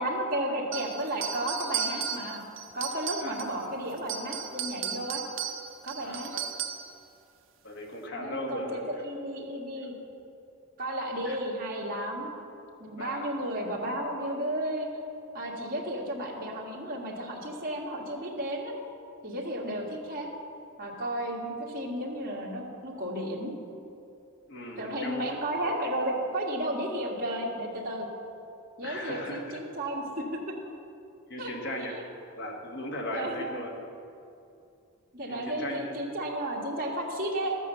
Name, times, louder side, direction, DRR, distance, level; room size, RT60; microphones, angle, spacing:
voice 1, 0.0-2.4 2.7-5.2 5.8-6.3 8.1-9.9 10.8-12.3 12.8-15.0 15.3-18.7 19.2-20.3 20.8-23.6 24.8-28.1 28.8-30.4 31.4-31.5 31.9-32.0 33.1-33.3 35.1-37.6, right 1 dB, 45° right, -3 dB, 1.9 m, -33 dB
sound 1, 0.7-3.6 4.0-7.0, right 8 dB, 65° right, 0.7 m, -35 dB
voice 2, 6.0-6.4 7.6-9.0 11.3-11.4 13.0-13.2 24.5-25.3 28.8-29.6 31.3-32.0 32.4-33.7 35.3-36.0, left 1 dB, 55° left, 1 dB, 1.8 m, -37 dB
13.0 x 8.2 x 6.9 m, 2.6 s
head